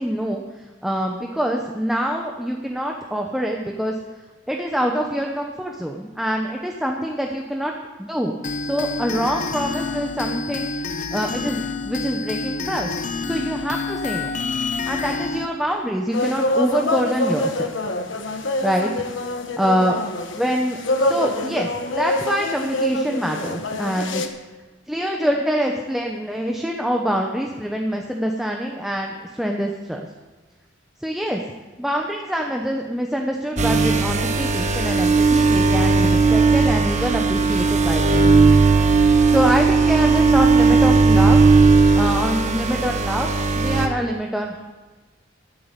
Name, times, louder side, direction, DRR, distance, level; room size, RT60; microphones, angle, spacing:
voice 1, 0.0-3.9 4.5-7.7 8.0-8.4 8.6-13.0 13.2-14.3 14.9-17.7 18.6-19.1 19.6-20.0 20.3-24.2 24.9-30.0 31.0-31.4 31.8-38.3 39.3-41.5 41.9-43.3 43.6-44.7, equal, ahead, 1 dB, 0.9 m, -25 dB
sound 1, 8.4-15.5, left 3 dB, 40° left, 0.7 m, -28 dB
sound 2, 16.1-24.3, left 1 dB, 80° left, 1.3 m, -25 dB
sound 3, 33.6-43.9, right 4 dB, 40° right, 1.2 m, -16 dB
13.5 x 8.5 x 8.3 m, 1.3 s
head